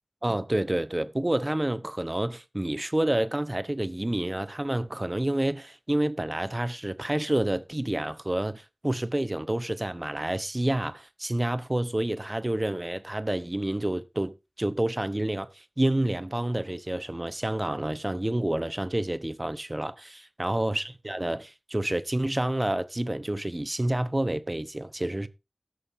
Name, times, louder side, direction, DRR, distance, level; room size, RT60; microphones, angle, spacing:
voice 1, 0.2-25.3, right 1 dB, 30° right, 0.8 m, -29 dB
19.0 x 6.4 x 2.6 m
wide cardioid pair, 55°, 0 cm